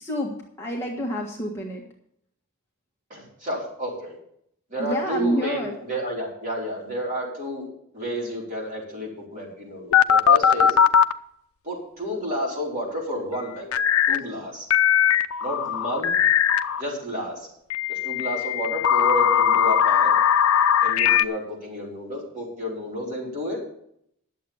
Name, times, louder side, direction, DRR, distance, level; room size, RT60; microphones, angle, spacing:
voice 1, 0.0-1.8 4.8-5.7, equal, 10° left, -2 dB, 1.5 m, -28 dB
voice 2, 3.1-4.2 4.7-7.7 7.9-10.7 11.6-13.6 14.1-14.7 15.4-16.2 16.8-17.5 17.9-20.1 20.8-23.6, equal, 35° right, -3 dB, 4.7 m, -31 dB
sound 1, 9.9-11.1 13.7-14.2 14.7-16.8 17.7-21.2, left 8 dB, 75° left, 0.5 m, -19 dB
11.0 x 7.6 x 7.1 m, 0.71 s
head